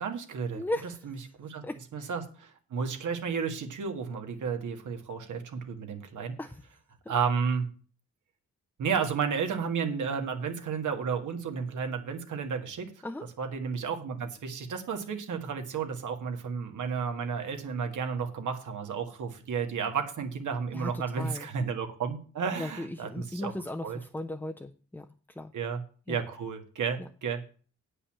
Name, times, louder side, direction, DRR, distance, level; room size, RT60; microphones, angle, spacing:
voice 1, 0.0-0.6 1.0-1.6 1.9-6.4 7.1-7.7 8.8-12.9 13.4-23.5 23.8-24.0 25.5-25.8 26.1-27.5, right 6 dB, 80° right, 5 dB, 1.6 m, -32 dB
voice 2, 0.5-1.1 1.6-2.1 6.4-6.6 7.0-7.1 13.0-13.2 20.7-21.5 22.6-25.5 26.1-26.2 27.0-27.1, left 1 dB, 5° left, 6 dB, 0.6 m, -37 dB
8.7 x 5.5 x 7.3 m, 0.40 s
cardioid pair, 95°, 30 cm